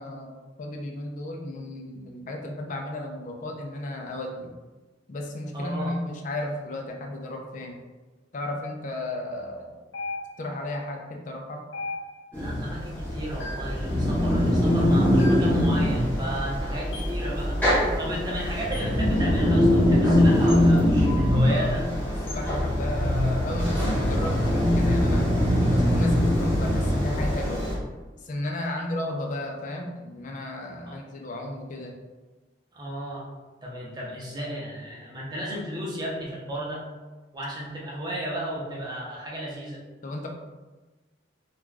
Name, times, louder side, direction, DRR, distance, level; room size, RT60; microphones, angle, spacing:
voice 1, 0.0-4.5 5.1-7.8 8.3-9.8 10.4-11.6 21.4-21.8 22.3-25.4 25.7-27.6 28.2-31.9 40.0-40.3, left 1 dB, 40° left, 1 dB, 0.4 m, -34 dB
voice 2, 5.5-5.9 12.4-17.6 18.0-21.8 28.6-28.8 30.9-31.0 32.7-33.3 33.6-36.8 37.3-39.8, right 1 dB, 20° right, -5 dB, 0.6 m, -34 dB
sound 1, 9.9-10.6 11.7-12.4 13.4-13.8 15.2-15.6 16.9-17.2 18.7-19.0 20.5-20.7 22.3-22.5, left 2 dB, 90° left, 0.8 m, -37 dB
sound 2, 12.3-27.7, left 1 dB, 10° left, 0.8 m, -22 dB
2.4 x 2.2 x 3.1 m, 1.2 s
head